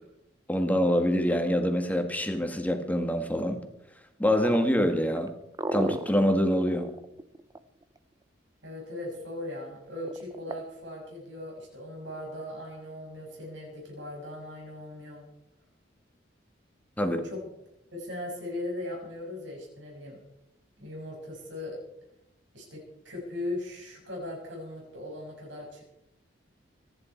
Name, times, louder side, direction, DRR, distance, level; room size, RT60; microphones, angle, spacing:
voice 1, 0.5-3.6 4.2-5.3 5.7-6.9 17.0-17.2, equal, 10° left, 6 dB, 1.8 m, -25 dB
sound 1, 4.3-8.0 10.0-10.6, right 1 dB, 20° right, 0.7 m, -34 dB
voice 2, 8.6-15.3 17.0-17.4 17.9-20.2 20.8-21.8 22.5-25.8, left 1 dB, 75° right, -1 dB, 6.3 m, -38 dB
25.5 x 11.0 x 4.5 m, 0.82 s
head